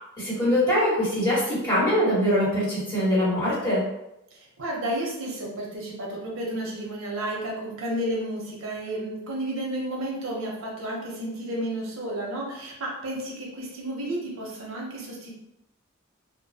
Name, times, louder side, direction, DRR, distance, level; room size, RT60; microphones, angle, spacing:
voice 1, 0.2-3.8, equal, 20° left, -10 dB, 1.3 m, -23 dB
voice 2, 4.3-15.3, right 1 dB, 85° right, -2 dB, 0.7 m, -32 dB
2.3 x 2.1 x 2.7 m, 0.86 s
head